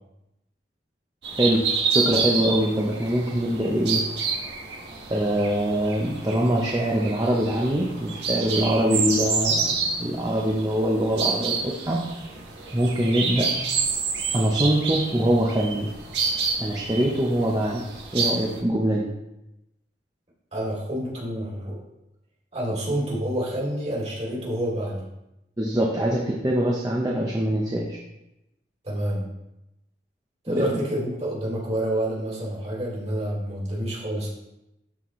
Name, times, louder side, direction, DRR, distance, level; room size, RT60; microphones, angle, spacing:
sound 1, 1.2-18.6, right 5 dB, 70° right, 1.4 m, -29 dB
voice 1, 1.9-4.0 5.1-12.0 12.7-13.5 14.3-15.9 16.6-17.8 18.1-19.1 25.6-28.0 30.5-30.8, right 1 dB, 20° right, -3 dB, 0.8 m, -23 dB
voice 2, 20.5-21.8 22.5-25.0 28.8-29.2 30.4-34.3, right 1 dB, 35° right, -6 dB, 3.0 m, -28 dB
12.5 x 4.3 x 3.2 m, 0.90 s
head